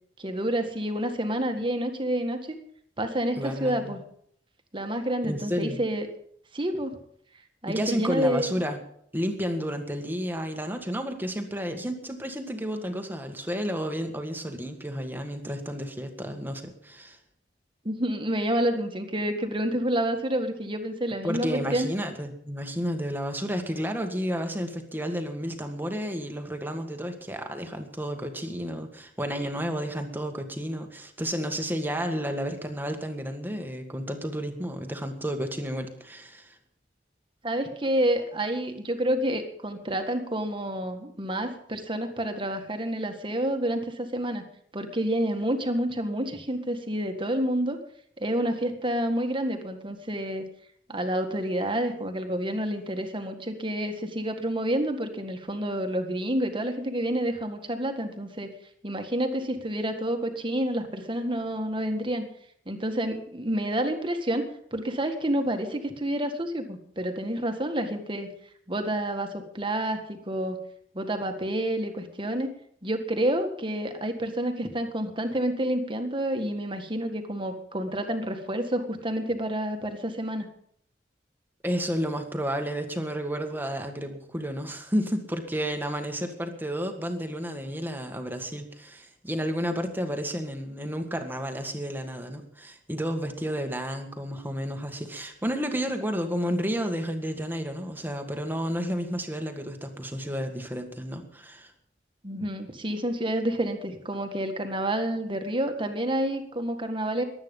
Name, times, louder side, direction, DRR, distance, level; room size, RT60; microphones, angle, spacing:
voice 1, 0.2-2.4 3.0-4.0 4.7-6.1 6.5-7.0 7.6-8.6 17.9-21.9 37.4-44.4 44.7-47.8 48.2-50.4 50.9-58.5 58.8-62.2 62.7-64.5 64.7-68.3 68.7-70.6 70.9-72.5 72.8-80.5 102.2-107.2, right 1 dB, 30° right, 6 dB, 1.8 m, -29 dB
voice 2, 3.3-4.0 5.2-5.8 7.7-8.8 9.1-17.2 21.2-36.6 81.6-101.7, equal, 10° right, 5 dB, 1.7 m, -31 dB
22.5 x 9.0 x 5.4 m, 0.66 s
head